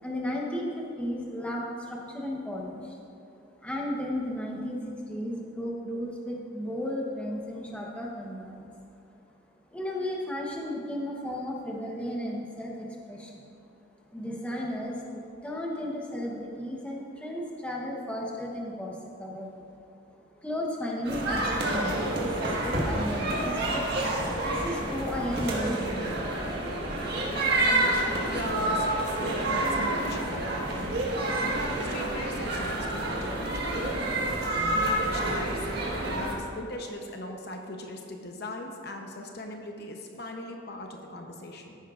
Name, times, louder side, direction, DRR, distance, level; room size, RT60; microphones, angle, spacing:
voice 1, 0.0-3.0 3.6-8.7 9.7-13.4 14.1-19.6 20.4-23.9 24.4-26.1, left 1 dB, 5° left, -3 dB, 1.0 m, -34 dB
sound 1, 21.0-36.3, right 1 dB, 55° right, 1.6 m, -28 dB
voice 2, 27.7-31.1 31.9-33.7 34.7-41.8, left 1 dB, 50° left, 3 dB, 0.9 m, -39 dB
14.0 x 10.5 x 2.5 m, 2.5 s
head